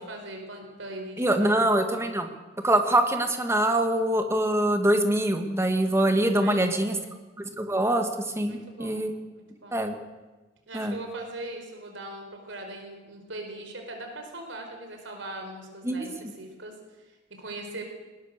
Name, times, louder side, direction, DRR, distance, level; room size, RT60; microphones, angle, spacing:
voice 1, 0.0-1.6 6.4-7.1 8.5-9.9 10.7-17.8, right 2 dB, 75° right, 3 dB, 4.6 m, -40 dB
voice 2, 1.2-2.3 2.6-7.0 7.6-8.1 8.4-9.1 9.7-10.0 10.7-11.0 15.8-16.1, right 1 dB, 15° right, 6 dB, 1.9 m, -24 dB
21.0 x 19.0 x 6.8 m, 1.2 s
head